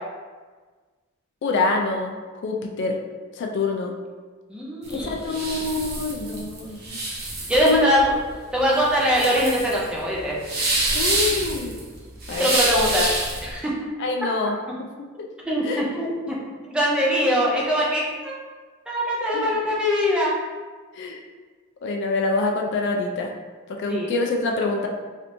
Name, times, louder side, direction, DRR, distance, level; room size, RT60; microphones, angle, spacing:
voice 1, 1.4-3.0 3.3-3.9 4.9-7.0 7.7-7.9 8.7-8.8 10.9-11.8 12.3-12.6 14.0-14.9 15.2-15.3 15.6-15.8 19.3-19.5 20.9-21.2 21.8-23.3 23.7-24.9, left 3 dB, 55° left, 1 dB, 0.3 m, -26 dB
voice 2, 4.5-5.4 7.5-8.2 8.5-10.4 12.4-13.1 13.4-13.7 15.5-16.3 16.7-18.3 18.9-20.3 23.9-24.1, equal, 5° right, -5 dB, 0.5 m, -22 dB
sound 1, 4.8-13.5, right 2 dB, 50° right, 0.7 m, -27 dB
3.2 x 2.8 x 2.6 m, 1.4 s
head